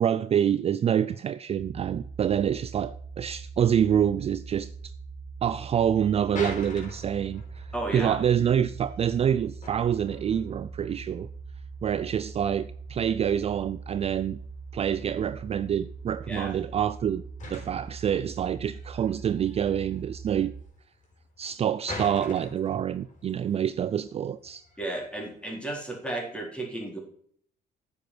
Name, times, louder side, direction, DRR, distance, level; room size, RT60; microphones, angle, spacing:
voice 1, 0.0-4.7 5.4-11.3 11.8-14.4 14.7-17.2 17.5-20.5 21.4-24.6, right 9 dB, 35° right, 0.4 m, -26 dB
sound 1, 1.6-20.6, right 4 dB, 15° right, 1.0 m, -42 dB
sound 2, 5.9-25.4, left 2 dB, 45° left, 5.1 m, -46 dB
voice 2, 7.7-8.2 16.3-16.5 24.8-27.0, right 2 dB, 5° left, 4.0 m, -33 dB
9.7 x 7.2 x 6.1 m
cardioid pair, 110°, 17 cm